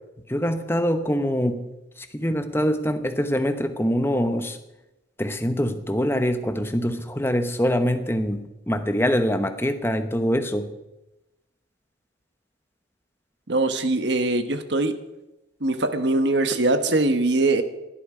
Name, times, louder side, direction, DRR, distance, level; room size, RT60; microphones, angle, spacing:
voice 1, 0.3-1.7 2.0-4.6 5.2-10.7, equal, 10° left, 8 dB, 1.0 m, -24 dB
voice 2, 13.5-15.0 15.6-17.6, right 2 dB, 60° right, 8 dB, 1.3 m, -22 dB
16.5 x 11.5 x 5.0 m, 0.96 s
head